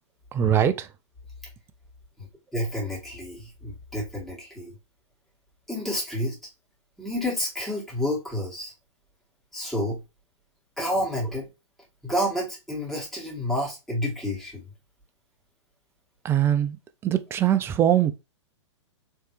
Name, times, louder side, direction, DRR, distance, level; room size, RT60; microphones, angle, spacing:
voice 1, 0.3-0.9 16.2-18.1, right 10 dB, 15° right, 0.4 m, -22 dB
voice 2, 2.5-4.7 5.7-6.4 7.0-8.7 9.5-10.0 10.8-11.5 12.0-14.7, equal, ahead, 2.1 m, -29 dB
4.4 x 3.2 x 3.2 m
figure-of-eight pair, 110°, 16 cm